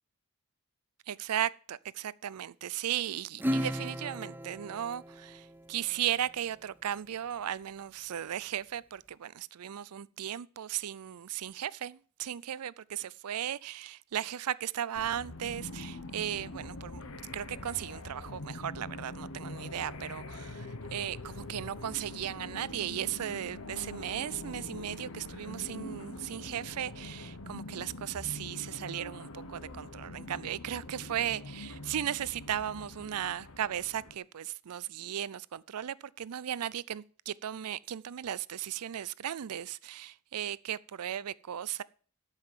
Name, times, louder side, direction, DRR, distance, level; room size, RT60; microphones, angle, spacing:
voice 1, 1.1-17.0 17.3-41.8, right 10 dB, 85° right, 0.4 m, -36 dB
Acoustic guitar / Strum, 3.4-6.3, equal, 10° right, 0.4 m, -36 dB
sound 1, 15.0-34.2, left 2 dB, 70° left, 1.1 m, -44 dB
12.5 x 5.7 x 7.4 m
head